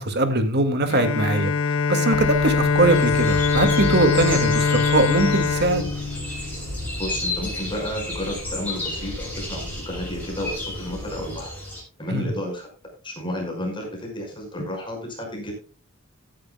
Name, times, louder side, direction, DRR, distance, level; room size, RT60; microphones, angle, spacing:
voice 1, 0.0-1.5 1.9-5.9 12.1-12.3, right 2 dB, 55° right, 9 dB, 2.1 m, -21 dB
Bowed string instrument, 0.9-6.9, left 5 dB, 75° left, 0.7 m, -23 dB
sound 1, 2.1-11.5, equal, 80° right, 7.2 m, -36 dB
sound 2, 2.8-11.8, left 2 dB, 10° left, 6.7 m, -33 dB
voice 2, 7.0-11.5 12.0-12.7 13.0-15.5, left 1 dB, 25° left, 1 dB, 5.4 m, -31 dB
17.5 x 10.5 x 2.3 m, 0.36 s
head